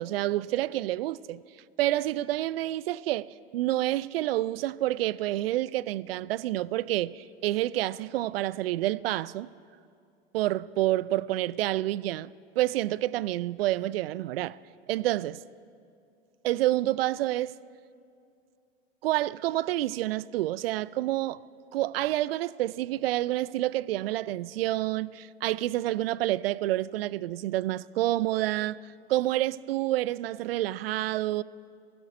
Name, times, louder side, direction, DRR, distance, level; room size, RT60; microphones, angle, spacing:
voice 1, 0.0-1.4 1.8-9.5 10.3-12.3 12.6-14.6 14.9-15.4 16.4-17.5 19.0-21.4 21.7-31.4, right 15 dB, 65° right, 0.4 m, -28 dB
16.5 x 15.5 x 5.0 m
hypercardioid pair, 95°, 32 cm